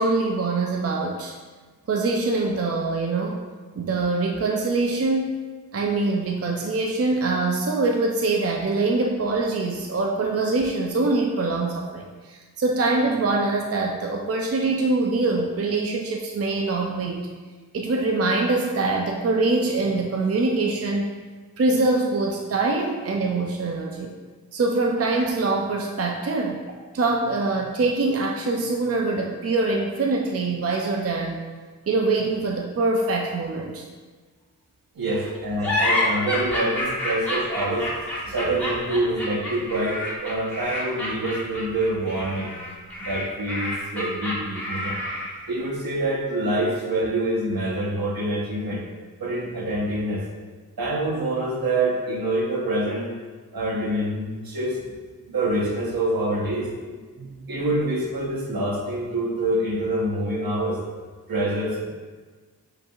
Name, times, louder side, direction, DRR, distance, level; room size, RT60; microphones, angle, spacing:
voice 1, 0.0-1.3 1.9-3.5 3.8-5.4 5.7-17.3 17.7-21.2 21.6-24.1 24.5-31.4 31.9-33.9 35.1-35.2 57.2-57.6, right 3 dB, 40° right, 1 dB, 0.5 m, -24 dB
voice 2, 34.9-37.9 38.2-42.5 43.0-45.0 45.5-48.8 49.2-50.2 50.8-53.1 53.5-54.8 55.3-57.0 57.5-60.8 61.3-61.9, right 1 dB, 65° right, -2 dB, 1.0 m, -26 dB
sound 1, 35.6-45.5, left 1 dB, 5° left, 1.4 m, -28 dB
7.8 x 2.9 x 2.4 m, 1.4 s
cardioid pair, 45°, 38 cm